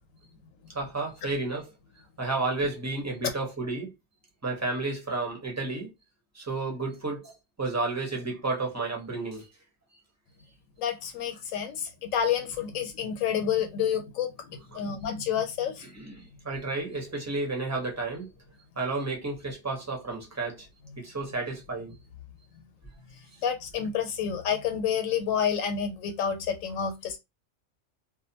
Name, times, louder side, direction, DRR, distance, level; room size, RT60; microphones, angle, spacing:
voice 1, 0.7-1.7 2.2-3.9 4.4-5.9 6.3-7.3 7.6-9.5 14.7-14.8 15.9-18.3 18.8-20.7 21.0-22.0, right 3 dB, 15° right, 0.6 m, -31 dB
voice 2, 10.8-15.9 23.4-27.2, left 8 dB, 80° left, 1.0 m, -29 dB
2.5 x 2.1 x 2.7 m
omnidirectional pair, 1.4 m